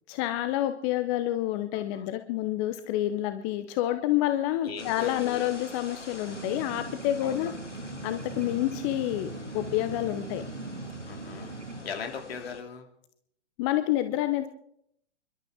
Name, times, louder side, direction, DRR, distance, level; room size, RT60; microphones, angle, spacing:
voice 1, 0.1-7.5 8.0-10.4 13.6-14.5, left 13 dB, 25° left, 9 dB, 0.7 m, -28 dB
voice 2, 1.7-2.0 4.6-5.5 7.2-7.5 8.3-8.6 11.0-12.9, left 6 dB, 60° left, 3 dB, 3.1 m, -40 dB
sound 1, 4.8-12.6, left 2 dB, 90° left, 2.3 m, -46 dB
sound 2, 6.3-11.8, right 3 dB, 75° right, 2.4 m, -40 dB
28.5 x 12.5 x 3.7 m, 0.72 s
figure-of-eight pair, 115°, 35 cm